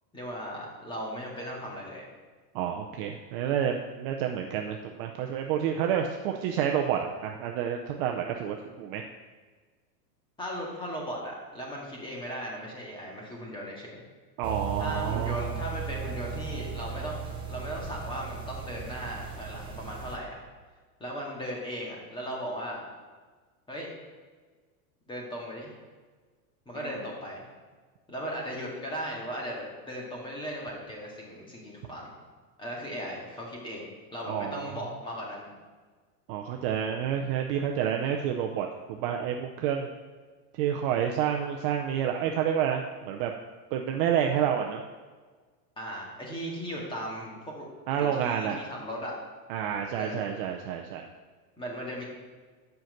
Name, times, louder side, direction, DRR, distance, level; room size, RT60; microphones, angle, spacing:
voice 1, 0.1-2.0 10.4-14.0 14.8-17.2 17.5-20.3 21.0-22.8 23.7-23.9 25.1-25.7 26.7-27.5 28.1-32.1 32.6-35.5 45.8-47.7 48.0-49.1 50.0-50.3 51.6-52.0, equal, 10° left, -2 dB, 2.0 m, -37 dB
voice 2, 2.5-9.1 14.4-15.4 26.7-27.0 34.3-34.8 36.3-39.9 40.5-43.3 43.7-44.8 47.9-48.6 49.5-51.1, right 9 dB, 35° right, 3 dB, 0.6 m, -29 dB
sound 1, 14.4-20.2, right 6 dB, 10° right, 0.9 m, -36 dB
7.8 x 5.9 x 7.7 m, 1.4 s
supercardioid pair, 155°, 47 cm